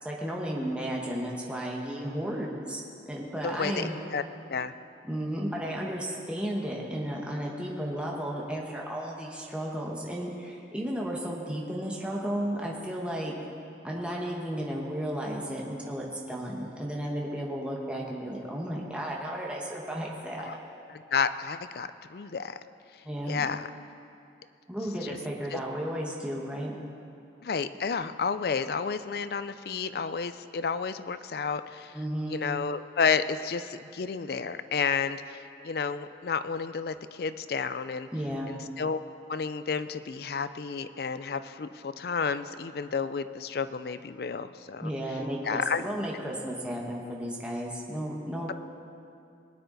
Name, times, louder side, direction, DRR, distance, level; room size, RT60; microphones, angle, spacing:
voice 1, 0.0-4.0 5.0-13.3 13.8-20.5 23.0-23.5 24.7-26.7 31.9-32.4 38.1-38.5 44.8-48.5, equal, 5° right, -3 dB, 1.3 m, -33 dB
voice 2, 3.4-4.2 4.5-4.7 20.4-20.6 21.1-22.6 23.3-23.7 25.0-25.2 25.5-25.6 27.4-31.9 32.3-38.1 38.5-39.0 39.3-44.9 45.4-45.8, left 5 dB, 55° left, 12 dB, 0.4 m, -31 dB
20.0 x 9.3 x 4.0 m, 2.6 s
head